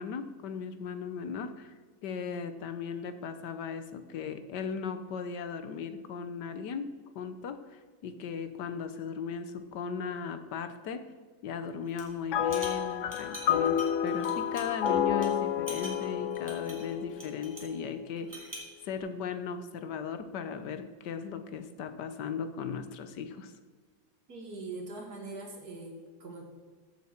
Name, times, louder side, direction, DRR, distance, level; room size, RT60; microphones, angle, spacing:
voice 1, 0.0-1.7 2.0-6.9 7.1-11.0 11.4-18.5 18.8-23.5, left 6 dB, 65° left, 10 dB, 1.4 m, -37 dB
sound 1, 11.9-12.1 12.4-14.9 15.2-15.3 15.7-17.8 18.2-18.7, equal, 10° right, 2.4 m, -45 dB
sound 2, 12.3-17.8, left 9 dB, 90° left, 0.6 m, -30 dB
voice 2, 24.3-26.4, right 3 dB, 55° right, 1 dB, 2.4 m, -42 dB
15.0 x 7.4 x 4.4 m, 1.5 s
omnidirectional pair, 2.1 m